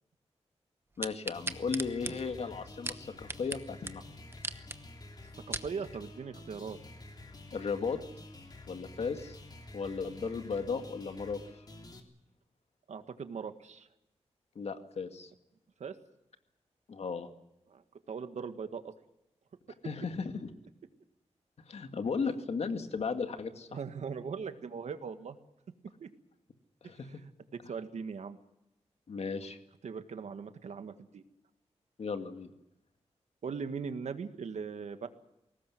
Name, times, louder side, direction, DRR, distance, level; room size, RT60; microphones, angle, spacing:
voice 1, 1.0-4.0 7.5-8.0 8.7-9.4 9.7-11.4 14.6-15.3 16.9-17.3 19.8-20.5 21.7-23.7 26.8-27.2 29.1-29.6 32.0-32.5, left 5 dB, 65° left, 7 dB, 2.1 m, -35 dB
sound 1, 1.0-3.6 3.9-4.0 4.3-4.8 5.2-5.7 6.3-6.4, right 2 dB, 20° right, 1.0 m, -38 dB
sound 2, 1.3-12.0, left 2 dB, 35° left, 3.1 m, -50 dB
voice 2, 5.5-6.8 12.9-13.9 15.8-15.9 17.7-17.8 18.1-18.9 23.7-25.4 26.0-26.1 27.7-28.4 29.8-31.2 33.4-35.1, right 6 dB, 85° right, 9 dB, 1.8 m, -39 dB
22.0 x 18.5 x 9.5 m, 0.88 s
wide cardioid pair, 160°, 12 cm